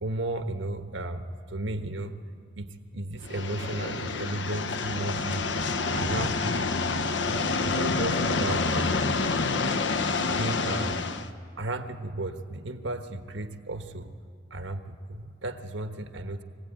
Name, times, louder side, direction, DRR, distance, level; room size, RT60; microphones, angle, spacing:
voice 1, 0.0-2.1 2.6-5.7 5.9-6.6 7.2-9.0 10.3-11.0 11.6-14.1 14.5-16.4, right 2 dB, 85° right, 8 dB, 1.3 m, -34 dB
sound 1, 3.2-11.3, left 3 dB, 70° left, 0.9 m, -28 dB
24.5 x 16.5 x 9.0 m, 2.3 s
head